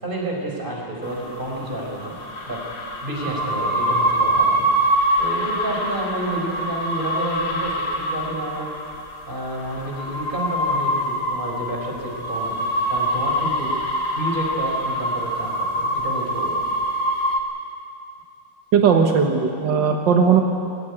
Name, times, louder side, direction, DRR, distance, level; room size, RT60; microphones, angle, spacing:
voice 1, 0.0-2.1 2.5-2.6 3.0-4.7 5.2-8.7 9.3-12.5 12.9-13.7 14.1-16.6, right 1 dB, 25° right, -1 dB, 4.7 m, -30 dB
sound 1, 1.0-17.4, right 1 dB, 65° left, 2.5 m, -24 dB
voice 2, 18.7-20.4, right 6 dB, 85° right, 3 dB, 2.0 m, -17 dB
21.0 x 16.0 x 9.8 m, 2.5 s
omnidirectional pair, 1.9 m